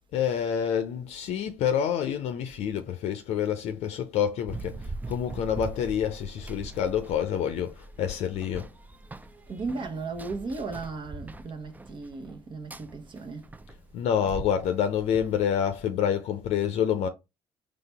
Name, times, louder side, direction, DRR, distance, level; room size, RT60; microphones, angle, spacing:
voice 1, 0.1-8.7 13.9-17.1, left 8 dB, 65° left, 0.6 m, -27 dB
Run, 4.5-15.9, right 2 dB, 15° right, 0.5 m, -42 dB
voice 2, 9.5-13.5, right 4 dB, 45° right, 1.0 m, -36 dB
4.0 x 3.2 x 3.4 m
hypercardioid pair, 60°, 12 cm